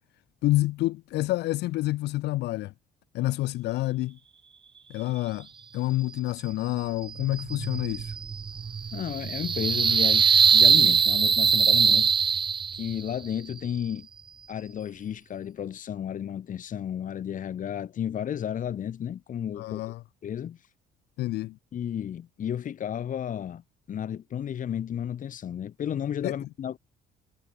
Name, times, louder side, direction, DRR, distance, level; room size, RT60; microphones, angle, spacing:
voice 1, 0.4-2.7 3.1-4.2 4.9-5.5 5.7-8.1 19.6-20.0 21.2-21.6 26.2-26.4, left 17 dB, 80° left, 2.2 m, -28 dB
sound 1, 7.0-13.0, right 6 dB, 30° right, 0.8 m, -22 dB
voice 2, 8.9-10.3 10.5-12.1 12.7-14.1 14.5-19.8 20.2-20.6 21.7-23.6 23.9-26.8, left 9 dB, 50° left, 4.9 m, -33 dB
cardioid pair, 110°, 17 cm